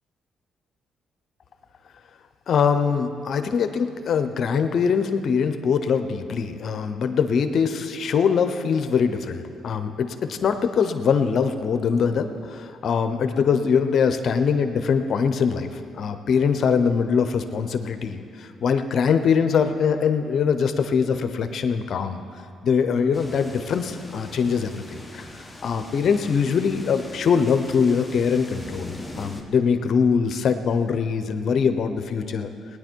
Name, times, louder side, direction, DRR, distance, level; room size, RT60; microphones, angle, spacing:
voice 1, 2.5-15.7 15.9-22.2 22.6-25.3 25.6-32.5, left 6 dB, 60° left, 9 dB, 0.8 m, -22 dB
sound 1, 23.1-29.4, left 1 dB, 5° left, 1.3 m, -41 dB
19.0 x 9.8 x 4.6 m, 2.4 s
cardioid pair, 90°, 0 cm